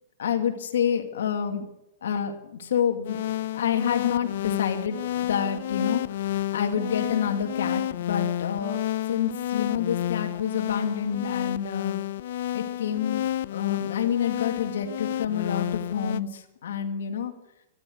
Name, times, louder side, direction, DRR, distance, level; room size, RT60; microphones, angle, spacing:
voice 1, 0.2-1.7 2.0-3.2 3.5-8.8 9.1-12.0 12.5-13.3 13.5-17.3, left 8 dB, 80° left, 6 dB, 2.4 m, -28 dB
sound 1, 3.1-16.2, left 13 dB, 65° left, 0.7 m, -30 dB
13.5 x 12.5 x 7.8 m, 0.88 s
hypercardioid pair, 140°, 0 cm